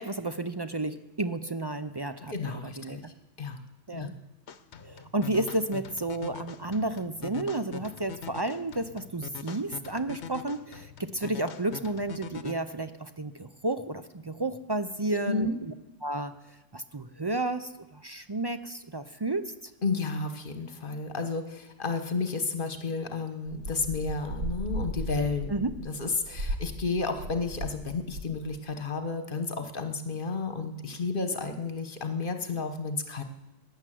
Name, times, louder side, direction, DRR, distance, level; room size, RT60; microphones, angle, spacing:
voice 1, 0.0-3.0 3.9-4.1 4.8-15.7 16.0-16.3 16.7-19.7 25.5-25.7, right 2 dB, 35° right, 10 dB, 0.4 m, -32 dB
voice 2, 2.3-3.0 3.4-3.6 3.9-4.1 15.3-15.6 19.8-25.5 25.8-33.2, left 4 dB, 45° left, 7 dB, 1.4 m, -32 dB
sound 1, 4.5-12.5, left 7 dB, 65° left, 1.1 m, -43 dB
sound 2, 23.6-27.8 28.1-28.5, right 1 dB, 60° right, 1.6 m, -36 dB
16.5 x 10.5 x 7.7 m, 0.99 s
omnidirectional pair, 1.3 m